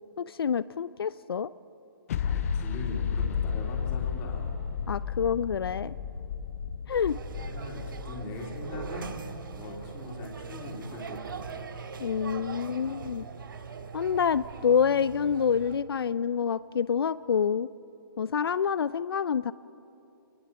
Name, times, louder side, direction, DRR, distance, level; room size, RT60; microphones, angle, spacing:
voice 1, 0.2-1.5 4.9-5.9 6.9-7.2 12.0-13.3 13.9-17.7 18.2-19.5, left 7 dB, 80° left, 17 dB, 0.4 m, -27 dB
sound 1, 2.1-9.6, left 7 dB, 35° left, 0.7 m, -33 dB
voice 2, 2.2-4.6 7.4-9.1 9.5-11.4, left 2 dB, 20° left, -1 dB, 3.1 m, -40 dB
sound 2, 7.1-15.8, right 5 dB, 60° right, 1.5 m, -41 dB
23.5 x 20.0 x 5.8 m, 3.0 s
hypercardioid pair, 160°, 12 cm